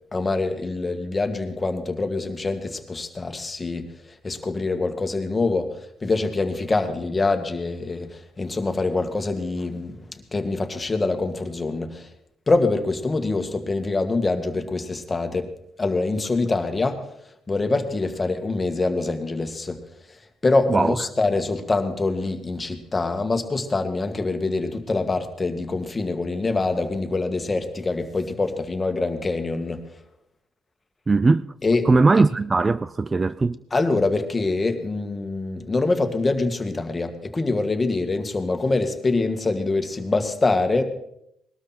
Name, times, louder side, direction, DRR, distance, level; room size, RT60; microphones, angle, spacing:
voice 1, 0.1-3.9 4.2-5.7 6.0-8.1 8.4-9.9 10.3-12.1 12.5-15.5 15.8-17.0 17.5-19.8 20.4-29.8 31.6-31.9 33.7-40.8, left 3 dB, 25° left, 2.1 m, -24 dB
voice 2, 31.1-31.5 31.8-33.6, right 3 dB, 30° right, 0.5 m, -19 dB
20.5 x 12.5 x 4.4 m
cardioid pair, 75°, 0 cm